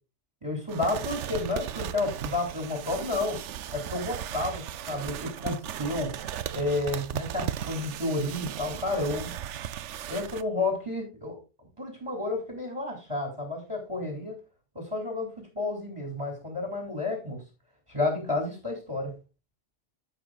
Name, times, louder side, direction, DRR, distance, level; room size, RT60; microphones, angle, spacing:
voice 1, 0.4-3.4 3.7-6.1 6.5-9.3 10.1-14.4 14.7-17.4 17.9-19.1, left 2 dB, 25° right, 2 dB, 2.6 m, -31 dB
sound 1, 0.7-10.4, right 10 dB, 75° right, 0.9 m, -36 dB
14.5 x 5.5 x 2.4 m, 0.30 s
omnidirectional pair, 1.2 m